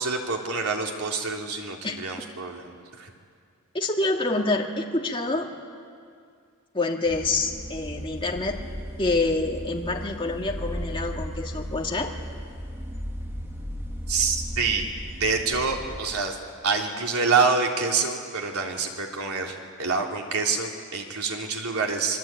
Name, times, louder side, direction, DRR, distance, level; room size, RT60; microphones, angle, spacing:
voice 1, 0.0-3.1 14.1-14.9 15.2-16.4 16.6-22.2, right 4 dB, 80° right, 1 dB, 3.2 m, -26 dB
voice 2, 3.7-5.5 6.7-8.6 9.0-12.1, left 2 dB, 25° left, 0 dB, 2.2 m, -27 dB
sound 1, 7.1-16.0, equal, 10° right, 2.7 m, -36 dB
26.5 x 23.0 x 9.0 m, 2.2 s
head